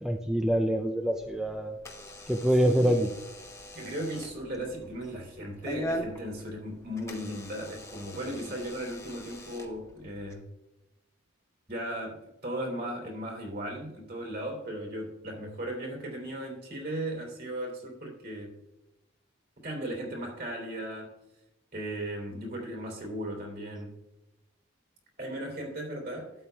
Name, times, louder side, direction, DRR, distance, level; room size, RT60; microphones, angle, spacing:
voice 1, 0.0-1.8 2.3-3.1, equal, ahead, 4 dB, 0.3 m, -25 dB
Door / Alarm, 1.1-10.3, equal, 15° left, 0.9 m, -42 dB
voice 2, 2.6-3.1 3.7-10.4 11.7-18.6 19.6-21.1 21.7-23.9 25.2-26.3, right 1 dB, 50° right, 0 dB, 3.1 m, -37 dB
12.0 x 8.6 x 2.3 m, 0.98 s
head